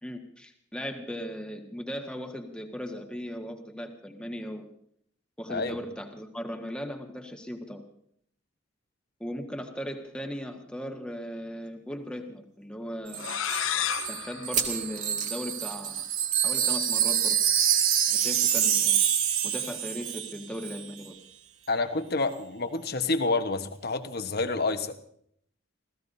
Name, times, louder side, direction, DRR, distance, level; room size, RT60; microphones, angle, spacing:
voice 1, 0.0-4.7 5.4-7.8 9.2-13.3 14.1-16.0 16.4-17.4 18.1-19.0 19.4-21.1, equal, 5° left, 3 dB, 1.7 m, -37 dB
sound 1, 11.7-11.8 12.1-12.2 12.8-12.9 14.3-16.5 16.7-16.9 17.2-17.3 18.8-18.9, right 6 dB, 40° right, 2.0 m, -34 dB
sound 2, 13.1-15.7, left 9 dB, 85° left, 0.7 m, -33 dB
Wind chime, 13.1-20.4 20.6-20.8, right 9 dB, 80° right, 1.3 m, -26 dB
voice 2, 21.7-25.0, left 3 dB, 50° left, 8 dB, 1.3 m, -28 dB
29.5 x 16.0 x 2.8 m, 0.66 s
head